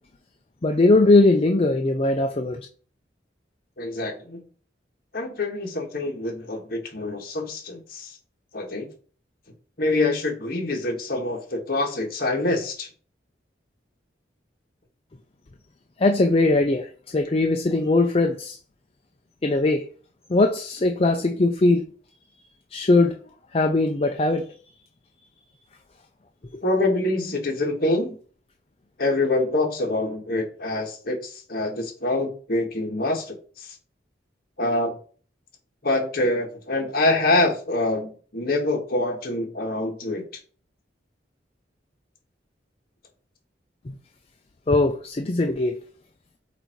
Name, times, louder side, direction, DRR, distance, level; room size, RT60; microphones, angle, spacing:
voice 1, 0.6-2.7 16.0-18.6 19.4-19.9 20.3-21.8 22.7-23.2 23.5-24.5 26.5-26.6 44.7-45.8, left 2 dB, 35° left, 0.5 m, -20 dB
voice 2, 3.8-4.4 5.1-8.2 8.5-8.9 9.8-12.9 26.6-28.2 29.0-33.7 34.6-35.0 35.8-40.2, left 2 dB, 55° left, 1.6 m, -25 dB
8.1 x 2.7 x 4.5 m
head